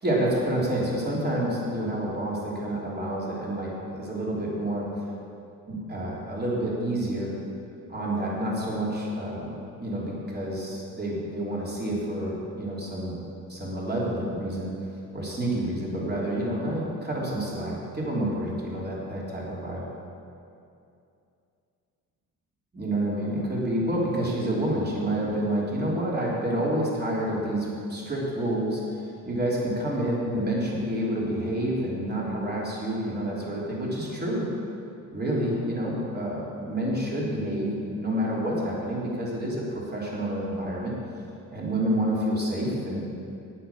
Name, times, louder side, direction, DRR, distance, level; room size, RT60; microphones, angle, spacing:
voice 1, 0.0-4.9 5.7-7.3 7.9-13.2 13.5-14.7 15.1-19.8 22.7-34.5 35.1-40.9 41.5-43.2, right 1 dB, 25° right, -5 dB, 3.5 m, -28 dB
9.9 x 9.2 x 7.2 m, 2.6 s
cardioid pair, 80°, 36 cm